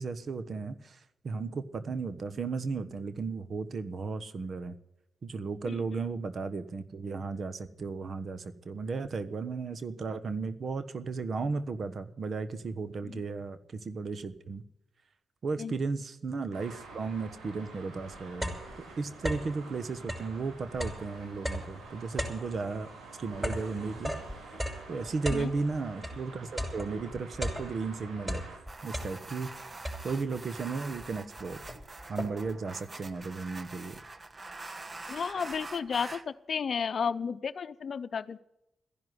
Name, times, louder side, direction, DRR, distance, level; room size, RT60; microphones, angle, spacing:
voice 1, 0.0-4.7 5.2-14.6 15.4-18.5 19.0-22.9 23.2-24.1 24.9-28.5 28.8-29.5 30.0-31.6 32.1-34.0, right 4 dB, 55° right, 12 dB, 1.3 m, -35 dB
Traffic noise roadway noise, 16.5-28.6, right 3 dB, 85° right, 4.9 m, -49 dB
sound 1, 17.5-17.6 18.0-19.6 20.0-26.2 26.6-27.9 28.2-29.5 29.8-30.4 31.0-31.1 31.4-32.6, equal, 15° right, 5.4 m, -37 dB
sound 2, 28.7-36.3, right 3 dB, 35° right, 1.2 m, -45 dB
voice 2, 35.1-38.4, left 6 dB, 60° left, 10 dB, 0.7 m, -33 dB
14.5 x 11.0 x 8.0 m, 0.84 s
supercardioid pair, 50°, 0 cm